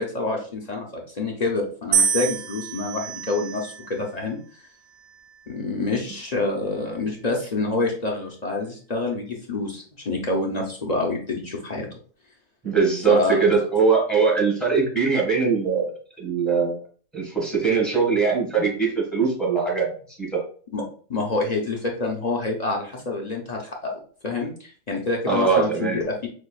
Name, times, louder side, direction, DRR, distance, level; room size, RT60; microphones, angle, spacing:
voice 1, 0.0-4.4 5.5-11.9 13.1-13.4 20.7-20.8 21.1-26.3, left 3 dB, 40° left, 0 dB, 0.6 m, -27 dB
sound 1, 1.9-4.1 4.9-5.5, right 7 dB, 65° right, 0.9 m, -27 dB
voice 2, 12.6-16.8 17.1-20.4 25.3-26.0, right 5 dB, ahead, -4 dB, 1.6 m, -21 dB
6.3 x 2.4 x 2.3 m, 0.43 s
omnidirectional pair, 1.5 m